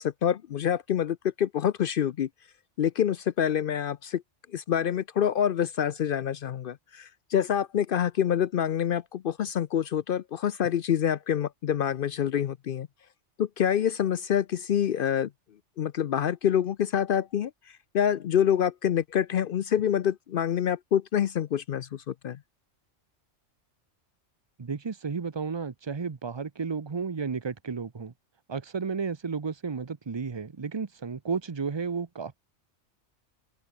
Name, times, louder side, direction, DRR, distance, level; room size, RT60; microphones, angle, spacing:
voice 1, 0.0-2.3 2.8-4.2 4.5-12.9 13.4-15.3 15.8-17.5 17.9-22.4, left 9 dB, 60° left, 0.6 m, -26 dB
voice 2, 24.6-28.1 28.5-32.4, right 5 dB, 25° right, 0.7 m, -33 dB
open air
omnidirectional pair, 1.2 m